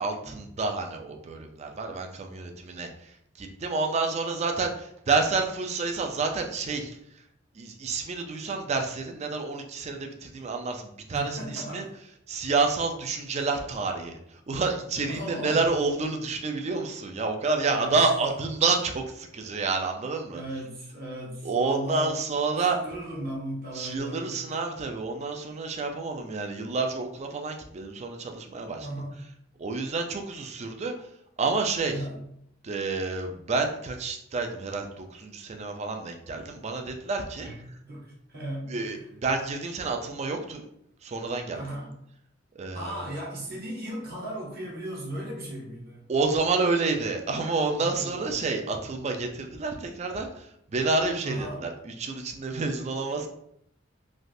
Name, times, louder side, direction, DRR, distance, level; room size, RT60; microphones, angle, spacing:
voice 1, 0.0-3.1 3.4-7.0 7.6-11.9 12.3-20.4 21.4-22.8 23.7-28.9 29.6-30.9 31.4-32.0 32.6-37.5 38.7-39.0 39.2-40.6 41.0-41.6 42.6-43.1 46.1-53.3, right 3 dB, 35° right, 4 dB, 0.4 m, -29 dB
voice 2, 11.1-11.9 15.1-15.7 17.6-18.0 20.3-22.2 22.6-24.4 28.8-29.2 31.8-32.2 37.4-37.6 37.8-39.0 41.5-41.9 42.7-46.1 47.7-48.4 51.2-51.6, right 1 dB, 50° right, -4 dB, 1.0 m, -37 dB
3.2 x 2.4 x 2.6 m, 0.73 s
head